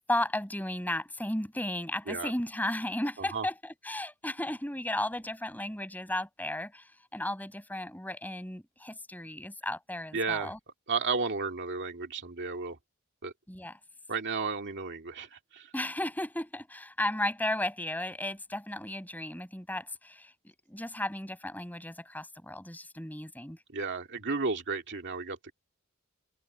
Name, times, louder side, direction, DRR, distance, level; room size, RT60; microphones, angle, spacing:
voice 1, 0.1-10.6 13.5-13.7 15.7-23.6, left 1 dB, 10° left, 6.4 m, -34 dB
voice 2, 10.1-10.5 10.9-12.8 13.2-13.3 14.1-15.7 23.7-25.5, right 4 dB, 55° right, 2.2 m, -33 dB
head